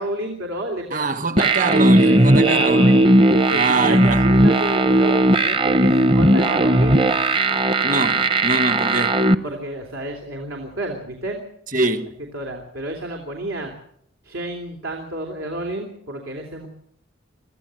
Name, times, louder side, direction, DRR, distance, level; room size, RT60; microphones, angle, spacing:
voice 1, 0.0-1.1 2.0-3.0 3.5-7.0 9.4-11.4 12.3-13.7 14.2-16.7, right 1 dB, 90° right, 3.2 m, -30 dB
voice 2, 0.9-3.1 3.5-4.3 7.8-9.2 11.7-12.2, right 2 dB, 40° right, 1.2 m, -24 dB
sound 1, 1.4-9.3, right 1 dB, 25° right, 0.7 m, -16 dB
24.0 x 15.0 x 7.7 m
head